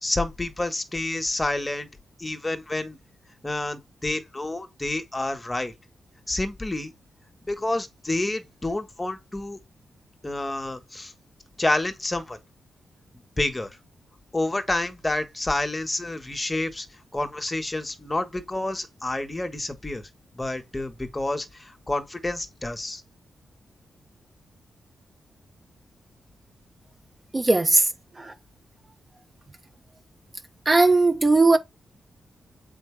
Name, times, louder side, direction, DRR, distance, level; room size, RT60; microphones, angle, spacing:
voice 1, 0.0-1.9 2.2-3.0 3.4-5.7 6.3-6.9 7.5-9.6 10.2-11.1 11.6-12.4 13.4-13.7 14.3-16.9 17.1-20.1 20.3-23.0, left 2 dB, 15° left, 1.3 m, -29 dB
voice 2, 27.3-27.9 28.2-28.3 30.7-31.6, right 3 dB, 25° right, 0.8 m, -18 dB
7.6 x 4.8 x 3.4 m
cardioid pair, 105°, 0 cm